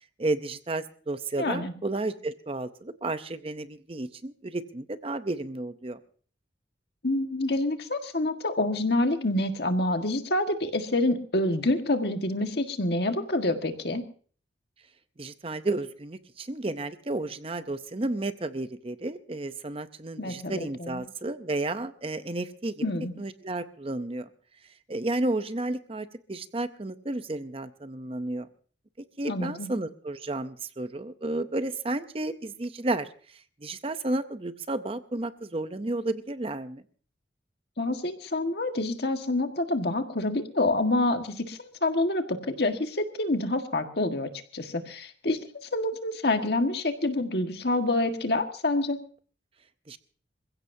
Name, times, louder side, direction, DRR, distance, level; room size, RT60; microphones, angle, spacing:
voice 1, 0.2-6.0 15.2-22.8 23.2-24.3 24.9-28.5 29.2-33.1 33.6-36.8 49.9-50.0, right 2 dB, 30° right, 11 dB, 0.6 m, -32 dB
voice 2, 1.4-1.7 7.0-14.0 20.2-21.0 22.8-23.1 29.2-29.7 37.8-49.0, left 2 dB, 60° left, 6 dB, 1.6 m, -27 dB
27.0 x 16.0 x 2.7 m, 0.43 s
head